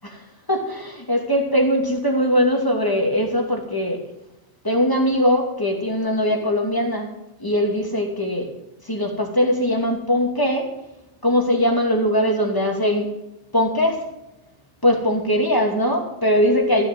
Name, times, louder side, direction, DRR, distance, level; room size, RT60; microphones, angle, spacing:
voice 1, 0.5-4.0 4.6-7.1 7.4-8.5 8.8-10.8 11.2-13.1 13.5-14.1 14.8-16.9, equal, 20° left, 1 dB, 2.7 m, -21 dB
15.0 x 6.9 x 9.4 m, 0.88 s
omnidirectional pair, 1.1 m